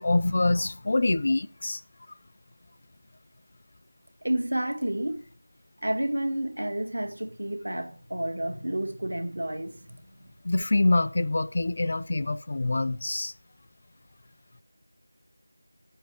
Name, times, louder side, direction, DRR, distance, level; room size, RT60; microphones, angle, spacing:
voice 1, 0.0-1.8 10.4-13.3, left 2 dB, 35° left, 0.4 m, -25 dB
voice 2, 4.2-5.2 5.8-10.3, right 1 dB, 65° right, 2.0 m, -30 dB
9.0 x 7.3 x 4.8 m
figure-of-eight pair, 170°, 0 cm